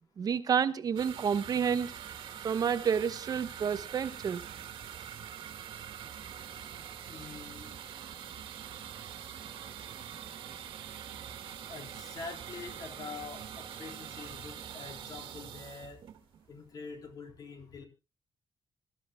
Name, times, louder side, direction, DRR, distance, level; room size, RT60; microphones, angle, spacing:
voice 1, 0.2-1.9 2.4-4.4, right 7 dB, 45° right, 0.9 m, -29 dB
sound 1, 1.0-16.7, right 9 dB, 80° right, 2.0 m, -44 dB
voice 2, 7.1-7.7 11.7-16.0 16.5-17.8, left 4 dB, 50° left, 3.7 m, -45 dB
26.0 x 13.5 x 2.2 m
wide cardioid pair, 165°, 9 cm